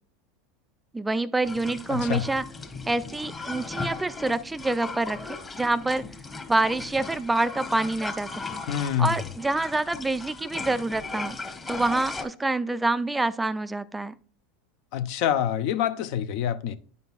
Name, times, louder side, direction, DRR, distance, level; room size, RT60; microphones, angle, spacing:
voice 1, 0.9-2.4 2.9-6.0 6.5-8.6 9.0-11.4 11.7-14.1, right 2 dB, 10° right, 0.3 m, -27 dB
sound 1, 1.4-12.3, left 3 dB, 20° left, 1.0 m, -37 dB
voice 2, 1.9-2.2 8.7-9.2 14.9-16.7, left 10 dB, 60° left, 0.5 m, -26 dB
9.4 x 5.4 x 2.4 m
hypercardioid pair, 90°, 0 cm